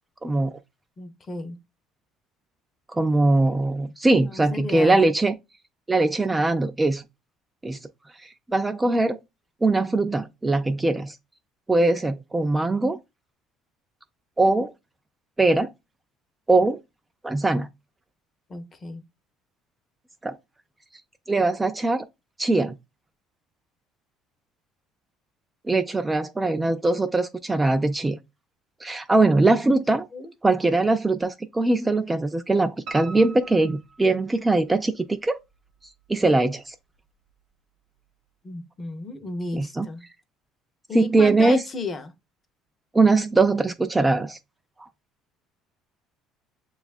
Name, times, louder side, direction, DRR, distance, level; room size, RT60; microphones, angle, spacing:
voice 1, 0.2-0.5 2.9-5.3 5.9-7.0 7.6-7.8 8.2-9.2 9.6-11.2 11.7-13.0 14.4-14.7 15.4-15.7 16.5-16.8 17.2-17.7 20.2-20.4 21.3-22.1 22.4-22.8 25.6-28.2 28.8-30.1 30.4-35.4 36.1-36.7 39.5-39.9 40.9-41.6 42.9-44.4 44.8-44.9, right 2 dB, 15° right, 0.3 m, -21 dB
voice 2, 1.0-1.6 4.2-5.0 18.5-19.1 29.5-29.6 30.1-30.3 38.4-40.1 40.9-42.1, left 3 dB, 30° left, 0.7 m, -34 dB
Piano, 32.9-34.8 35.2-36.1 36.4-36.5 37.0-37.1 37.3-37.4, right 4 dB, 65° right, 0.5 m, -43 dB
6.8 x 2.3 x 2.4 m
supercardioid pair, 100°, 0 cm